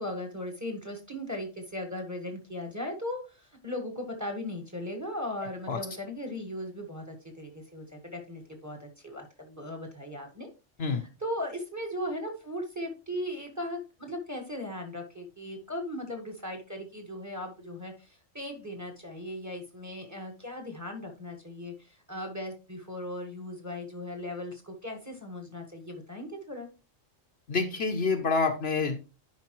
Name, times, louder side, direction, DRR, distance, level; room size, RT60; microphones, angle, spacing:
voice 1, 0.0-10.5 11.0-26.7, left 1 dB, 15° right, 3 dB, 1.4 m, -38 dB
voice 2, 27.5-29.0, left 4 dB, 60° left, 5 dB, 1.1 m, -27 dB
10.5 x 5.2 x 3.0 m, 0.31 s
omnidirectional pair, 1.3 m